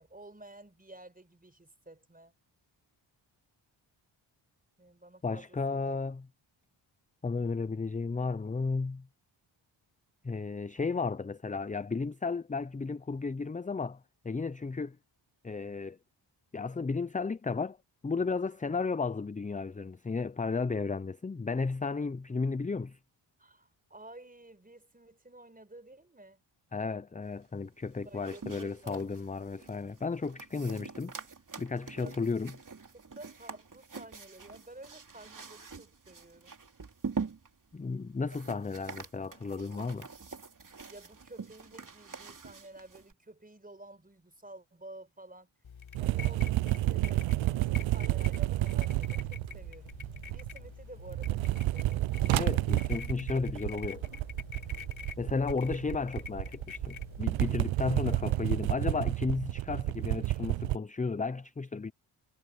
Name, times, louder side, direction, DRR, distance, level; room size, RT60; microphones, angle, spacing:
voice 1, 0.0-2.3 4.8-6.0 23.4-26.4 28.0-29.0 31.9-32.2 32.9-36.6 40.9-45.5 46.0-49.9 50.3-52.1, right 2 dB, 15° right, 4.9 m, -52 dB
voice 2, 5.2-6.2 7.2-9.1 10.2-15.0 15.4-16.0 16.5-17.8 18.0-23.0 26.7-31.1 31.6-32.5 37.7-40.1 52.2-54.1 55.2-61.9, left 4 dB, 15° left, 0.6 m, -33 dB
sound 1, 27.8-43.1, right 5 dB, 40° right, 3.1 m, -45 dB
sound 2, 45.6-57.5, left 7 dB, 65° left, 4.6 m, -47 dB
sound 3, 46.0-50.7 51.0-60.8, right 17 dB, 70° right, 0.6 m, -30 dB
cardioid pair, 60°, 49 cm